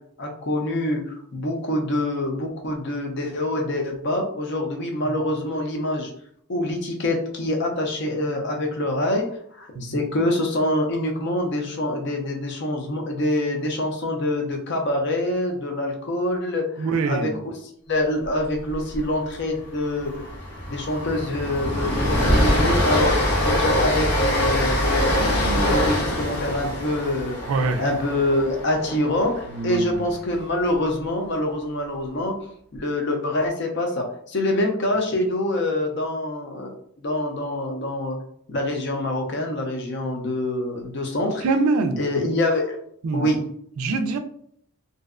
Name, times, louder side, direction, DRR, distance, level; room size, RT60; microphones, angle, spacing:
voice 1, 0.2-6.1 6.5-17.6 17.9-20.2 20.7-27.4 27.8-32.4 32.7-38.2 38.5-41.4 42.0-42.8 43.1-43.4, left 1 dB, 50° left, 1 dB, 0.5 m, -25 dB
voice 2, 16.8-17.4 27.5-27.8 29.5-30.1 41.4-42.0 43.0-43.3 43.8-44.2, right 3 dB, 75° right, 8 dB, 0.3 m, -24 dB
Train, 18.7-19.0 19.2-19.4 19.8-29.9, left 1 dB, 85° left, 0.9 m, -23 dB
2.5 x 2.1 x 2.4 m, 0.65 s
head